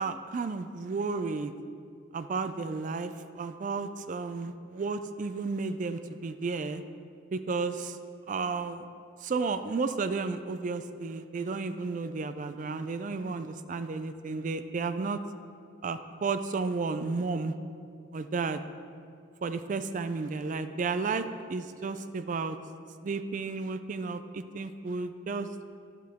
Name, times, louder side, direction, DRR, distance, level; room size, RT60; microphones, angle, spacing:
voice 1, 0.0-1.5 2.1-6.8 7.3-8.0 8.3-8.9 9.2-15.2 15.8-17.5 18.1-18.6 19.4-22.6 23.0-25.5, right 4 dB, 40° right, 10 dB, 0.3 m, -32 dB
11.0 x 7.6 x 3.5 m, 2.4 s
head